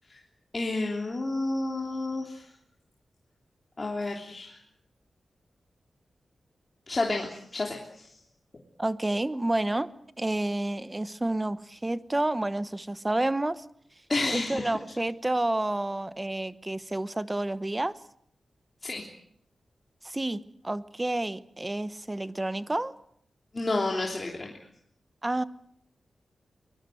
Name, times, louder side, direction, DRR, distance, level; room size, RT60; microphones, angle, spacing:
voice 1, 0.5-2.4 3.8-4.6 6.9-8.1 14.1-14.7 18.8-19.0 23.5-24.5, left 2 dB, 30° left, 0 dB, 3.2 m, -30 dB
voice 2, 8.8-9.9 10.2-13.6 14.3-18.0 20.0-22.9 25.2-25.4, right 1 dB, 15° right, 14 dB, 1.0 m, -29 dB
24.0 x 21.0 x 7.8 m, 0.69 s
wide cardioid pair, 135°, 0 cm